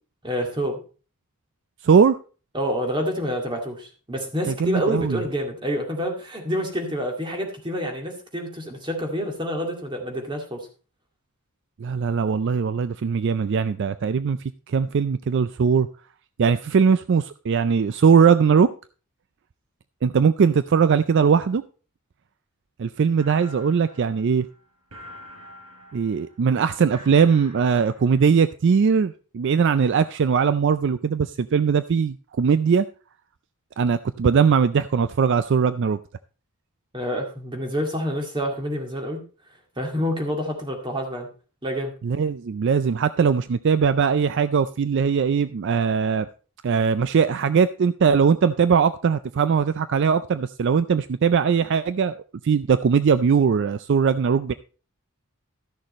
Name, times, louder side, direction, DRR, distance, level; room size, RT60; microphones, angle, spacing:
voice 1, 0.2-0.8 2.5-10.7 36.9-39.2 39.8-41.3 41.6-41.9, equal, 20° right, 2.1 m, -28 dB
voice 2, 1.8-2.2 4.5-5.2 11.8-14.4 14.7-15.9 16.4-18.7 20.0-21.6 22.8-24.5 25.9-32.9 33.8-36.0 42.0-46.3 46.6-54.5, right 6 dB, 55° right, 0.4 m, -20 dB
sound 1, 23.2-28.4, equal, 90° right, 4.5 m, -47 dB
13.0 x 6.5 x 4.1 m
head